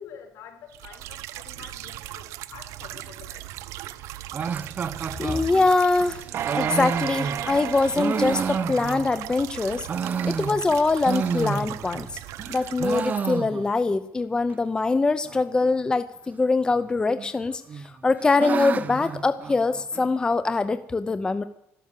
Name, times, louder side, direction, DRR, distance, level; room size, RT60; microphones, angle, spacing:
voice 1, 0.0-2.2 2.5-3.5, left 8 dB, 70° left, 5 dB, 4.0 m, -46 dB
sound 1, 0.7-13.1, right 14 dB, 80° right, 0.8 m, -39 dB
sound 2, 4.3-9.3 9.7-12.1 12.4-13.9 14.2-14.3 14.5-14.6 15.2-15.7 16.7-17.3 17.7-20.1, right 6 dB, 35° right, 0.8 m, -30 dB
voice 2, 5.2-6.2 6.5-9.9 10.2-12.2 12.5-21.4, left 3 dB, 15° left, 12 dB, 0.7 m, -23 dB
sound 3, 6.3-9.8 10.3-10.4, right 10 dB, 55° right, 1.1 m, -33 dB
13.5 x 12.5 x 8.2 m, 0.79 s
cardioid pair, 135°, 5 cm